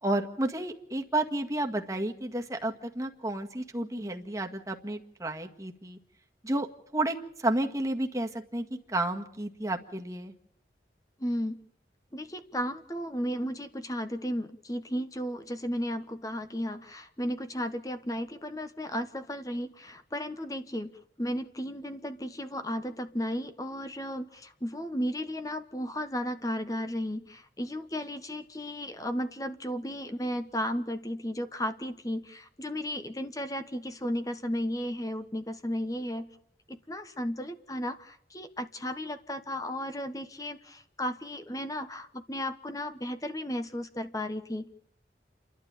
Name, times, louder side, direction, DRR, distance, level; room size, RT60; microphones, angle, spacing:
voice 1, 0.0-6.0 6.4-6.7 6.9-10.3, right 1 dB, 20° right, 3 dB, 1.8 m, -31 dB
voice 2, 11.2-11.6 12.1-36.3 36.7-44.7, equal, 20° left, 9 dB, 1.2 m, -34 dB
29.5 x 12.0 x 8.9 m, 0.68 s
head